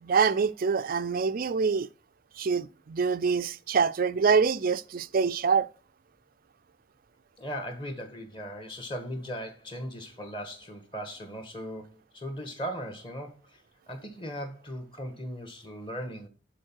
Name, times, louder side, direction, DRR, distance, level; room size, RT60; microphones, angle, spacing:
voice 1, 0.0-1.9 2.4-5.7, right 5 dB, 45° right, 0.4 m, -25 dB
voice 2, 7.4-13.6 13.9-16.3, equal, 25° left, 1.5 m, -38 dB
11.0 x 4.2 x 4.6 m
head